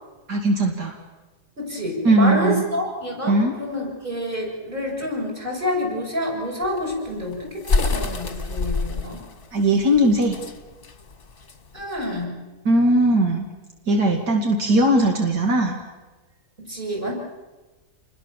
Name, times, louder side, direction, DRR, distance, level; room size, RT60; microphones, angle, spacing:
voice 1, 0.3-0.9 2.0-2.6 3.2-3.6 9.5-10.4 12.6-13.5 13.9-15.8, right 1 dB, 80° right, 2 dB, 2.9 m, -19 dB
voice 2, 1.6-9.2 11.7-12.4 16.6-17.1, left 1 dB, 30° right, -2 dB, 7.6 m, -28 dB
sound 1, 6.6-12.2, left 3 dB, 35° left, 1.4 m, -27 dB
29.0 x 21.5 x 7.3 m, 1.2 s
omnidirectional pair, 1.7 m